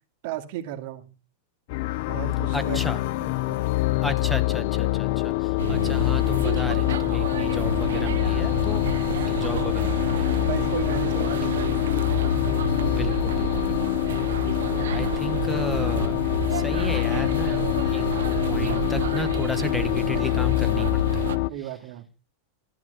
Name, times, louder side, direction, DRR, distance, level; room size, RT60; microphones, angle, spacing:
voice 1, 0.2-1.1 2.1-2.8 3.2-3.8 10.4-12.0 14.6-15.1 21.5-22.1, right 12 dB, 55° right, 6 dB, 2.5 m, -35 dB
sound 1, 1.7-21.5, left 20 dB, 55° left, 0.7 m, -25 dB
voice 2, 2.5-3.0 4.0-10.5 11.1-11.3 12.9-14.0 14.9-16.2 16.5-18.0 18.5-21.3, left 2 dB, 5° left, 12 dB, 1.5 m, -34 dB
sound 2, 5.6-21.4, right 11 dB, 80° right, 0.8 m, -31 dB
13.5 x 9.6 x 5.5 m, 0.31 s
supercardioid pair, 135°, 0 cm